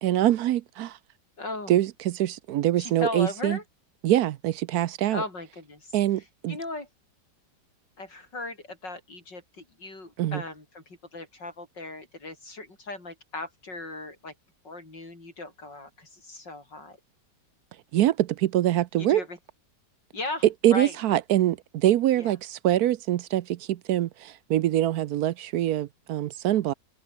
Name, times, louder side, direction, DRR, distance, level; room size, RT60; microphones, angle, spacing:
voice 1, 0.0-1.0 1.7-3.6 4.0-5.2 5.9-6.6 10.2-10.4 17.9-19.2 20.6-26.7, right 13 dB, 70° right, 1.0 m, -24 dB
voice 2, 1.4-1.7 2.8-3.6 5.1-6.0 6.5-6.9 8.0-14.3 14.6-17.0 19.0-19.4 20.1-21.0 22.2-22.4, left 2 dB, 75° left, 7.1 m, -37 dB
omnidirectional pair, 1.9 m